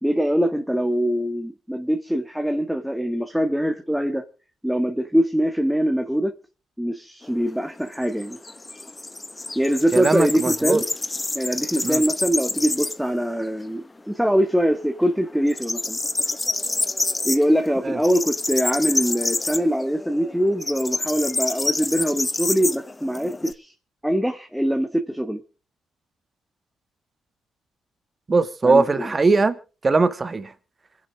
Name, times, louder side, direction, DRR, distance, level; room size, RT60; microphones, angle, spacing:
voice 1, 0.0-4.2 4.6-6.3 6.8-8.4 9.6-10.9 11.3-16.0 17.2-23.7 24.0-25.4 28.6-29.1, equal, ahead, 1.7 m, -23 dB
sound 1, 7.2-13.2 13.5-13.6 14.0-14.8 15.0-23.5, left 2 dB, 20° left, 1.0 m, -28 dB
voice 2, 9.9-10.8 11.8-12.0 17.8-18.0 28.3-29.6 29.8-30.5, right 3 dB, 30° right, 1.7 m, -20 dB
26.0 x 10.5 x 3.8 m
cardioid pair, 90°, 0 cm